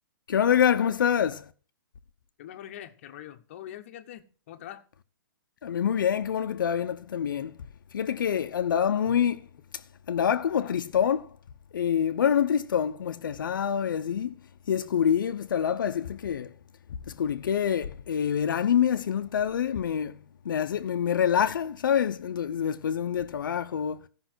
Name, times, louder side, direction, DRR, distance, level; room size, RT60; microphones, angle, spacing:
voice 1, 0.3-1.5 5.6-7.6 7.9-9.4 10.1-11.3 11.7-14.3 14.7-16.5 17.1-20.2 20.4-24.0, left 8 dB, 65° left, 0.8 m, -26 dB
voice 2, 2.4-4.8 10.5-10.7, left 11 dB, 35° left, 1.0 m, -43 dB
14.0 x 5.6 x 6.2 m
hypercardioid pair, 165°, 12 cm